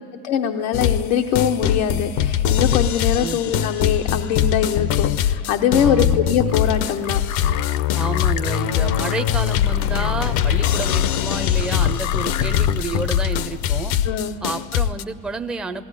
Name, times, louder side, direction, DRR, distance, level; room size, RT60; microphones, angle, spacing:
voice 1, 0.2-7.2 14.0-14.4, left 8 dB, 90° left, 3 dB, 1.0 m, -22 dB
sound 1, 0.7-1.1 1.3-15.0, left 9 dB, 65° left, 0.8 m, -22 dB
voice 2, 5.8-6.2 8.0-13.9 14.4-15.8, right 3 dB, ahead, 7 dB, 0.5 m, -30 dB
sound 2, 6.5-13.8, left 12 dB, 50° left, 0.5 m, -34 dB
19.0 x 17.0 x 9.8 m, 2.3 s
supercardioid pair, 115°, 40 cm